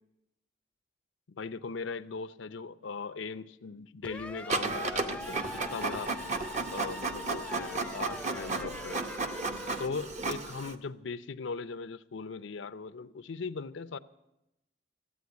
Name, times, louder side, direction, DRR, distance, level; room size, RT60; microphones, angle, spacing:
voice 1, 1.3-6.1 6.7-9.0 9.8-14.0, left 4 dB, 75° left, 0.6 m, -39 dB
sound 1, 4.0-9.9, left 2 dB, 5° left, 0.4 m, -43 dB
Printer, 4.5-10.7, right 3 dB, 35° right, 0.8 m, -34 dB
14.5 x 8.7 x 9.4 m
head